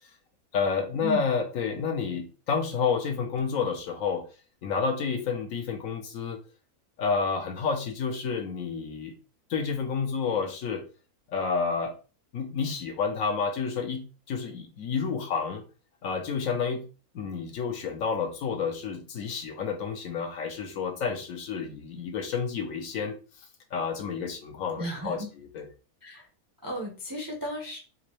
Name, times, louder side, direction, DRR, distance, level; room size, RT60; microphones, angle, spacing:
voice 1, 0.5-4.2 4.6-6.4 7.0-9.1 9.5-10.8 11.3-11.9 12.3-15.6 16.0-16.8 17.1-23.2 23.7-25.2 25.5-25.7, left 5 dB, 70° left, 4 dB, 1.0 m, -30 dB
voice 2, 24.8-25.3 26.0-26.3 26.6-27.8, left 1 dB, 25° right, 0 dB, 0.4 m, -34 dB
3.8 x 2.6 x 3.0 m, 0.34 s
omnidirectional pair, 1.6 m